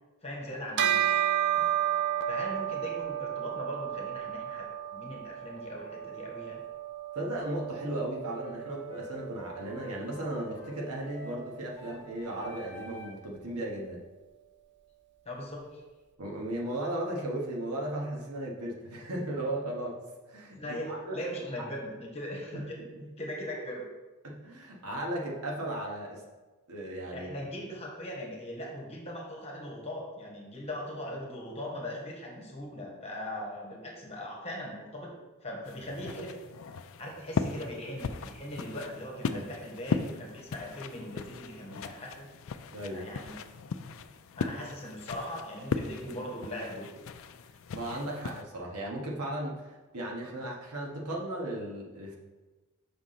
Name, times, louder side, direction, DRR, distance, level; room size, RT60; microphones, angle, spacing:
voice 1, 0.2-1.0 2.3-4.6 4.9-6.6 15.2-15.8 20.6-20.9 21.1-22.8 23.2-23.9 27.1-35.2 35.4-36.3 37.0-42.3 42.9-43.4 44.3-46.9, left 1 dB, 30° left, -1 dB, 1.4 m, -40 dB
Bell, 0.8-10.5, right 11 dB, 55° right, 0.5 m, -32 dB
voice 2, 7.1-14.0 16.2-20.0 20.3-21.2 21.6-21.7 22.5-22.7 23.0-23.1 24.2-26.2 26.7-27.3 39.3-39.5 42.7-43.1 47.7-52.2, right 1 dB, 90° right, -1 dB, 1.3 m, -36 dB
sound 1, 8.2-13.3, left 1 dB, 10° left, 1.4 m, -47 dB
sound 2, 35.7-48.4, left 5 dB, 60° left, 0.4 m, -38 dB
5.8 x 3.8 x 5.8 m, 1.2 s
head